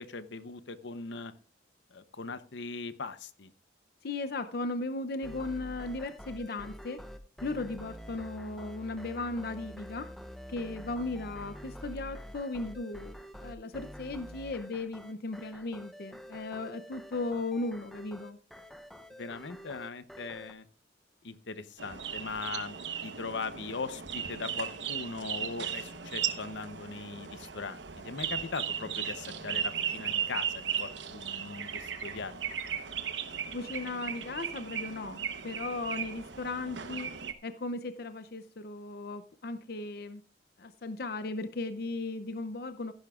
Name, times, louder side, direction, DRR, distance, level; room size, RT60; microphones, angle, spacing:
voice 1, 0.0-1.3 1.9-3.5 19.2-20.6 21.2-32.6, left 4 dB, 85° left, 12 dB, 0.8 m, -40 dB
voice 2, 4.0-7.0 7.4-10.1 10.5-18.4 33.5-37.1 37.4-40.2 40.6-42.9, left 2 dB, 60° left, 11 dB, 0.6 m, -36 dB
sound 1, 5.2-20.5, equal, ahead, 0.7 m, -47 dB
sound 2, 21.8-37.3, right 8 dB, 80° right, 1.0 m, -36 dB
15.5 x 10.5 x 2.4 m, 0.39 s
head